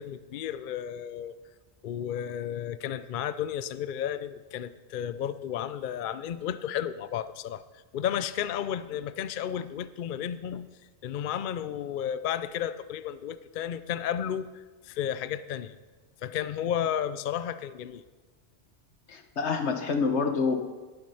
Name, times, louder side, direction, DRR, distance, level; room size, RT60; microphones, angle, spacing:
voice 1, 0.0-1.4 1.8-7.6 7.9-10.7 11.0-15.8 16.2-18.0, left 9 dB, 60° left, 14 dB, 0.6 m, -33 dB
voice 2, 19.1-20.6, left 4 dB, 80° left, 6 dB, 1.4 m, -27 dB
19.0 x 7.6 x 5.6 m, 1.3 s
omnidirectional pair, 1.1 m